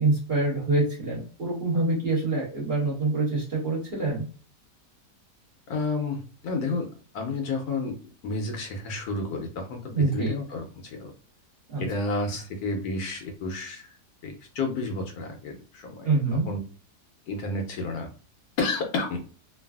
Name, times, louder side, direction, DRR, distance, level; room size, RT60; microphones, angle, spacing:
voice 1, 0.0-4.2 9.9-10.3 11.7-11.8 16.0-16.5, right 3 dB, 45° right, -4 dB, 0.9 m, -25 dB
voice 2, 5.7-8.0 8.2-11.1 11.8-14.0 14.2-16.1 16.5-16.6 17.3-18.1 18.6-19.2, left 3 dB, 75° left, 4 dB, 1.1 m, -31 dB
3.2 x 2.3 x 2.3 m, 0.38 s
omnidirectional pair, 1.7 m